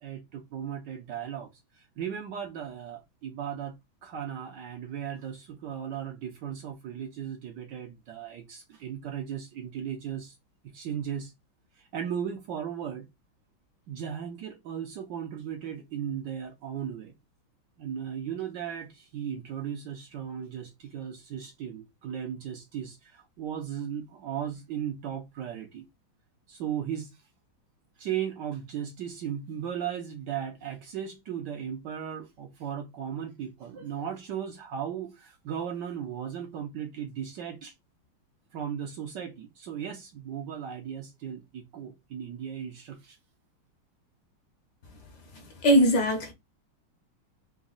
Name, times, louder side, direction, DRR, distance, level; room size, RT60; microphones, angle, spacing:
voice 1, 0.0-1.5 1.7-3.7 4.0-10.4 10.6-11.3 11.8-13.1 13.9-17.1 17.8-25.8 26.5-27.2 28.0-37.7 38.5-43.2, right 9 dB, 70° right, 1.2 m, -36 dB
voice 2, 45.6-46.3, equal, 60° left, 1.4 m, -20 dB
4.0 x 2.2 x 3.7 m
omnidirectional pair, 2.3 m